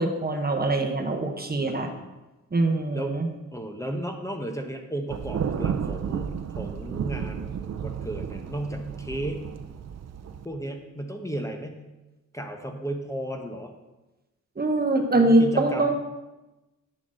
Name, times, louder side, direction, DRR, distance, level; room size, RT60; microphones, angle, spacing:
voice 1, 0.0-1.9 2.5-3.3 14.6-15.9, right 2 dB, 30° right, 3 dB, 1.0 m, -23 dB
voice 2, 1.6-2.1 2.9-3.2 3.5-9.5 10.4-11.8 12.3-13.7 15.1-15.9, right 1 dB, 10° left, 3 dB, 0.9 m, -34 dB
Thunder, 5.1-10.5, right 7 dB, 60° right, 0.5 m, -32 dB
8.8 x 3.9 x 6.2 m, 1.1 s
cardioid pair, 70°, 29 cm